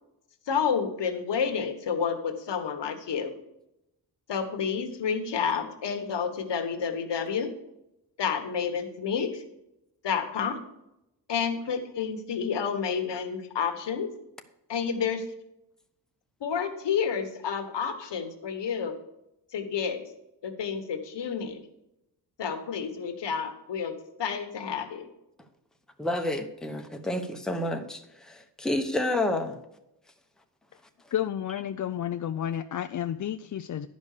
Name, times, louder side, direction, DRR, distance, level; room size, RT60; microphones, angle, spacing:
voice 1, 0.5-3.3 4.3-7.5 8.2-9.4 10.0-10.6 11.3-14.1 14.7-15.2 16.4-18.9 19.5-20.0 20.4-21.6 22.4-25.0, left 6 dB, 75° left, 7 dB, 1.4 m, -30 dB
voice 2, 26.0-29.6, left 1 dB, ahead, 4 dB, 0.9 m, -30 dB
voice 3, 31.1-33.9, left 10 dB, 45° left, 8 dB, 0.4 m, -31 dB
11.0 x 5.3 x 6.6 m, 0.86 s
wide cardioid pair, 120°, 42 cm